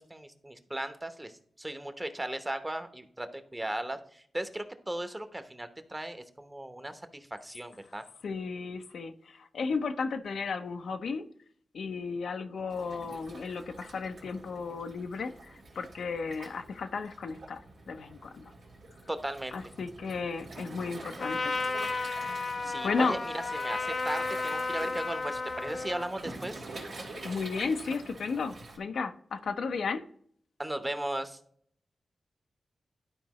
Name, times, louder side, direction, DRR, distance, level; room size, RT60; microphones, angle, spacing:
voice 1, 0.0-1.3 1.6-8.0 19.1-19.5 22.6-26.6 30.6-31.4, right 1 dB, 20° right, 9 dB, 0.9 m, -37 dB
voice 2, 8.2-11.2 11.7-17.6 17.9-18.5 19.5-21.5 21.8-22.4 22.8-23.2 27.2-30.0, left 4 dB, 85° left, 7 dB, 0.6 m, -34 dB
Waves surf, 12.7-28.8, right 2 dB, 80° right, 1.8 m, -46 dB
Trumpet, 21.2-26.1, left 3 dB, 60° left, 0.8 m, -33 dB
12.0 x 4.6 x 3.1 m, 0.62 s
cardioid pair, 55°, 0 cm